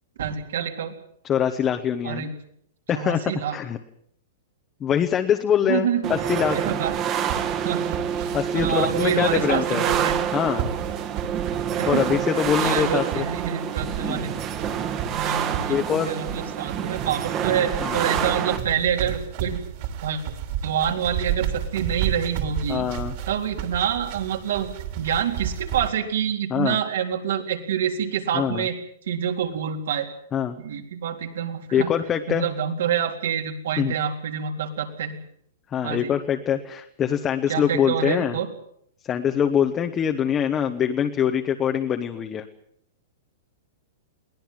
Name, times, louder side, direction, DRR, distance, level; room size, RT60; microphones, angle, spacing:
voice 1, 0.2-0.9 2.0-2.3 2.9-3.6 5.7-6.1 6.5-6.9 7.6-7.9 8.5-10.2 11.8-12.1 12.6-14.3 15.1-19.6 20.0-20.2 20.6-22.9 23.3-24.7 25.0-28.7 29.1-30.1 30.6-31.9 32.3-35.2 35.8-36.1 37.5-38.5, right 8 dB, 70° right, 3 dB, 3.9 m, -27 dB
voice 2, 1.2-2.2 2.9-3.8 4.8-6.6 8.3-9.9 10.3-10.7 11.9-13.2 14.0-14.2 15.7-16.1 17.8-18.0 22.7-23.1 26.5-26.8 28.3-28.7 30.3-30.6 31.7-32.4 33.8-33.9 35.7-38.4 39.1-42.4, left 8 dB, 15° left, 5 dB, 1.0 m, -24 dB
sound 1, 6.0-18.6, right 8 dB, 20° right, 1.5 m, -27 dB
sound 2, 6.8-25.9, right 9 dB, 40° right, 3.0 m, -33 dB
22.5 x 18.5 x 7.6 m, 0.67 s
supercardioid pair, 175°, 0 cm